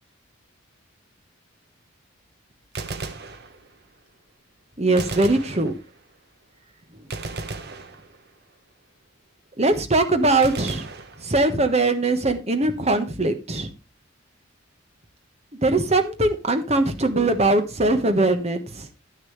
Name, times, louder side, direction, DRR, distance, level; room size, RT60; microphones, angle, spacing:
Gunshot gunfire, 2.6-4.0 5.0-6.2 7.1-8.5 10.4-11.8, right 3 dB, 50° right, 1.1 m, -36 dB
voice 1, 4.8-5.7 9.6-10.9 11.3-13.7 15.6-18.9, right 2 dB, 30° right, 7 dB, 1.3 m, -21 dB
10.5 x 10.0 x 3.2 m, 0.28 s
head